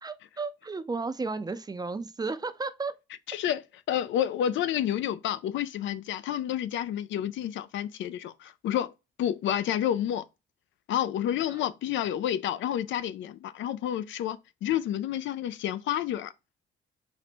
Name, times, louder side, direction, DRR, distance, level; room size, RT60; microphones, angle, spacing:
voice 1, 0.0-2.9 11.5-11.6, right 4 dB, 20° right, 0.4 m, -33 dB
voice 2, 3.3-3.6 3.9-8.9 9.2-10.2 10.9-16.3, left 10 dB, 70° left, 0.4 m, -29 dB
4.1 x 2.1 x 4.3 m
cardioid pair, 90°, 20 cm